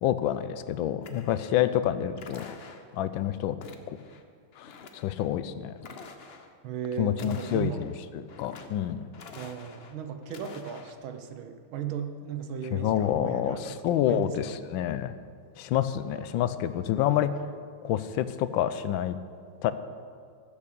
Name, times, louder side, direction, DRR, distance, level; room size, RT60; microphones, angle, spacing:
voice 1, 0.0-2.5 2.9-3.6 3.9-4.0 4.6-5.7 7.0-9.1 12.7-15.1 15.6-17.3 17.8-19.2 19.6-19.7, left 11 dB, 80° left, 13 dB, 1.3 m, -28 dB
sound 1, 1.0-1.6 2.1-3.0 3.6-4.2 4.5-5.3 5.8-6.5 7.1-7.9 8.3-8.9 9.1-9.9 10.2-10.9, left 4 dB, 60° left, 0.6 m, -47 dB
voice 2, 6.6-7.8 9.3-14.6, right 8 dB, 80° right, 7 dB, 1.7 m, -36 dB
13.0 x 8.4 x 6.8 m, 2.2 s
omnidirectional pair, 2.2 m